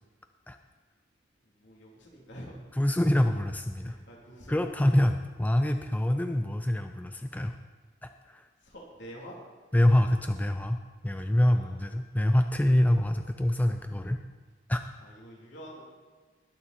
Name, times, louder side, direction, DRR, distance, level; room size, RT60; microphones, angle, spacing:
voice 1, 1.6-2.5 3.8-4.6 8.7-9.3 15.0-15.8, equal, 70° left, -3 dB, 3.2 m, -46 dB
voice 2, 2.7-4.0 4.5-7.6 8.0-8.5 9.7-14.2 14.7-14.8, left 1 dB, 10° left, 7 dB, 0.4 m, -25 dB
20.5 x 7.0 x 4.4 m, 1.4 s
head